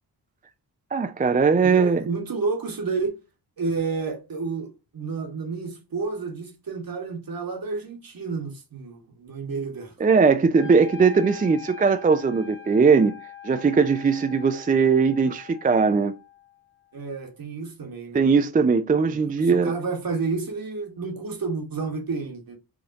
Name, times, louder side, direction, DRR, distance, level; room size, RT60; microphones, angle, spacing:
voice 1, 0.9-2.0 10.0-13.1 13.4-16.1 18.1-19.7, right 5 dB, 20° right, 0.3 m, -20 dB
voice 2, 1.6-3.2 3.6-9.9 16.9-18.2 19.0-22.6, right 4 dB, 60° right, 1.3 m, -30 dB
Wind instrument woodwind instrument, 10.5-16.6, left 9 dB, 30° left, 1.2 m, -43 dB
4.9 x 2.6 x 2.6 m
cardioid pair, 75°, 40 cm